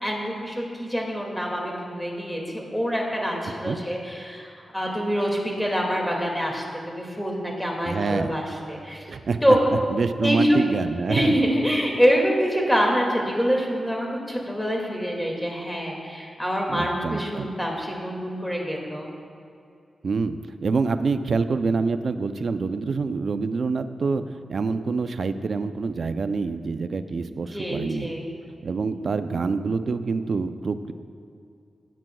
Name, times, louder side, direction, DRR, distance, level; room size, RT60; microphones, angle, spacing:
voice 1, 0.0-9.0 9.4-9.7 10.2-10.6 11.1-19.1 27.3-28.3, equal, 5° left, -1 dB, 2.2 m, -25 dB
voice 2, 7.9-8.3 9.1-9.4 9.9-11.4 16.7-17.5 20.0-24.2 24.5-28.1 28.6-30.9, right 4 dB, 65° right, 10 dB, 0.5 m, -26 dB
16.0 x 9.0 x 2.3 m, 2.5 s
cardioid pair, 60°, 0 cm